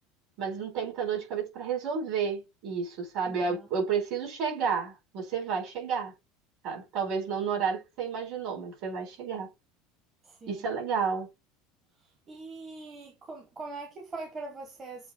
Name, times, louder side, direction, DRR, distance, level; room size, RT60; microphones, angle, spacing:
voice 1, 0.4-6.1 6.6-9.5 10.5-11.3, right 6 dB, 45° right, 4.1 m, -31 dB
voice 2, 3.2-3.7 10.2-10.7 12.3-15.1, right 3 dB, 20° right, 1.2 m, -42 dB
7.7 x 2.9 x 4.2 m
cardioid pair, 170°, 0 cm